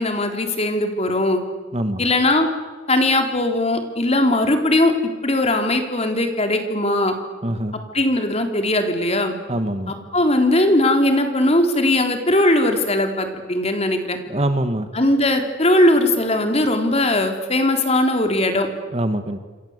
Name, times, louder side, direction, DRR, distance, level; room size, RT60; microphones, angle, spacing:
voice 1, 0.0-1.4 2.0-2.5 2.9-4.9 5.2-7.1 7.9-9.3 9.9-14.2 14.9-18.7, left 1 dB, 30° left, 5 dB, 3.7 m, -19 dB
voice 2, 7.4-7.8 9.5-9.9 14.3-14.9 18.9-19.4, right 1 dB, 30° right, 9 dB, 1.7 m, -23 dB
28.0 x 26.0 x 8.3 m, 1.4 s
head